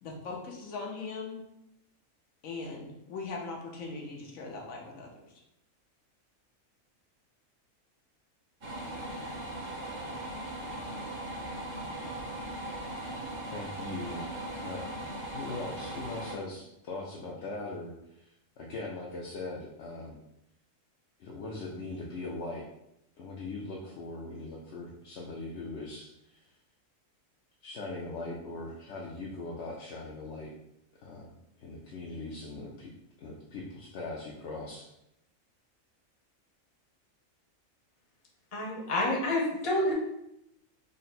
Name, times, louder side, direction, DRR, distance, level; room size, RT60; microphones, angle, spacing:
voice 1, 0.0-1.4 2.4-5.2, left 3 dB, 80° left, 0 dB, 1.2 m, -40 dB
sound 1, 8.6-16.4, right 1 dB, 45° right, 1.1 m, -39 dB
voice 2, 13.4-14.3 14.6-14.9 15.3-18.2 18.6-20.2 21.2-22.6 23.2-26.4 27.6-30.5 31.0-31.3 31.6-32.9 33.2-34.9, left 2 dB, 65° left, -3 dB, 0.8 m, -40 dB
voice 3, 38.5-39.9, left 1 dB, 30° left, -3 dB, 0.8 m, -28 dB
3.9 x 2.1 x 4.1 m, 0.82 s
omnidirectional pair, 1.4 m